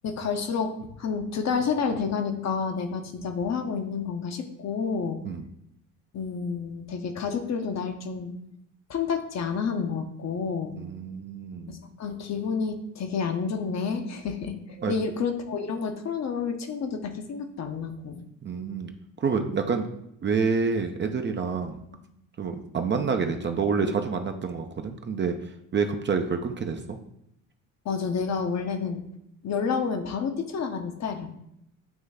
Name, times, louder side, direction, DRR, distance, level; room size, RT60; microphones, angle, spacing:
voice 1, 0.0-5.2 6.1-8.3 8.9-10.7 11.7-14.5 14.9-18.2 27.8-29.0 29.4-31.3, left 5 dB, 40° left, 6 dB, 0.9 m, -29 dB
voice 2, 10.8-11.8 14.8-14.9 18.4-18.9 19.2-19.9 20.2-21.8 22.4-25.3 25.7-27.0, right 5 dB, 25° right, 5 dB, 0.6 m, -28 dB
9.0 x 3.1 x 3.5 m, 0.77 s
hypercardioid pair, 55°, 43 cm